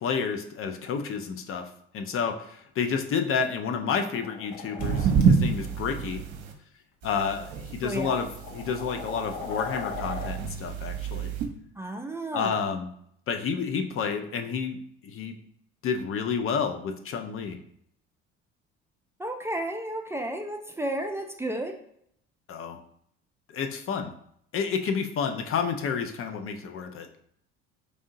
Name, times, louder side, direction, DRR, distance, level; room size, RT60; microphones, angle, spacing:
voice 1, 0.0-6.2 7.0-11.3 12.3-12.9 13.3-14.8 15.0-15.3 15.8-17.6 22.5-22.8 23.5-24.1 24.5-27.1, left 6 dB, 45° left, 6 dB, 0.5 m, -30 dB
sound 1, 4.1-5.2 6.3-6.5 7.4-7.5 8.1-10.3, left 5 dB, 60° left, 1.0 m, -38 dB
sound 2, 4.8-6.5 7.0-11.5, right 6 dB, 60° right, 0.8 m, -28 dB
voice 2, 7.8-8.2 11.8-12.6 19.2-21.8, right 1 dB, 10° right, 3 dB, 0.5 m, -32 dB
4.8 x 2.7 x 2.6 m, 0.70 s
hypercardioid pair, 60°, 32 cm